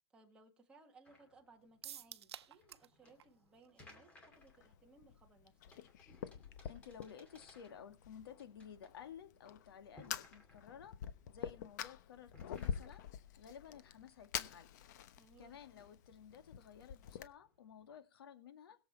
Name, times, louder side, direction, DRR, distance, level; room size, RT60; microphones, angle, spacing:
voice 1, 0.1-5.6 15.2-15.6, right 3 dB, 5° right, 1.8 m, -64 dB
sound 1, 1.1-18.0, left 1 dB, 10° left, 2.5 m, -66 dB
sound 2, 1.8-2.9 3.2-3.3 3.6-3.7, right 10 dB, 75° right, 0.9 m, -50 dB
Fire, 4.3-17.3, left 9 dB, 40° left, 1.0 m, -47 dB
voice 2, 6.7-11.0 11.3-13.0 13.4-14.7 15.4-18.8, left 8 dB, 65° left, 2.4 m, -54 dB
21.0 x 7.8 x 4.4 m
hypercardioid pair, 165°, 14 cm